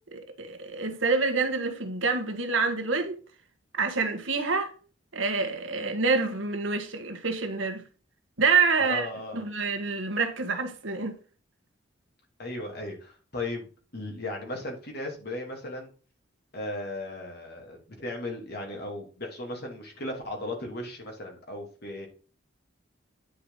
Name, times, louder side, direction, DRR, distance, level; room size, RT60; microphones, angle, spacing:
voice 1, 0.1-3.2 3.8-4.7 5.1-7.8 8.4-9.1 9.3-11.1, right 4 dB, 80° right, 1.6 m, -27 dB
voice 2, 8.8-9.5 12.4-13.7 13.9-15.9 16.5-22.1, left 1 dB, 55° left, 2.8 m, -36 dB
10.0 x 5.0 x 4.0 m
head